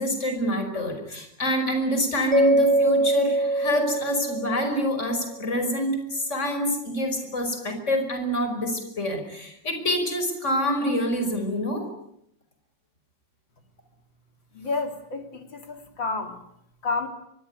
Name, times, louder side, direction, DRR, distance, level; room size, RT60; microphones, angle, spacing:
voice 1, 0.0-11.9, equal, 35° left, 6 dB, 5.7 m, -26 dB
Mallet percussion, 2.3-5.3, right 2 dB, 5° left, 3.8 m, -23 dB
voice 2, 14.5-16.4 16.8-17.1, left 4 dB, 75° left, 6 dB, 3.8 m, -30 dB
25.0 x 22.0 x 9.6 m, 0.77 s
omnidirectional pair, 2.1 m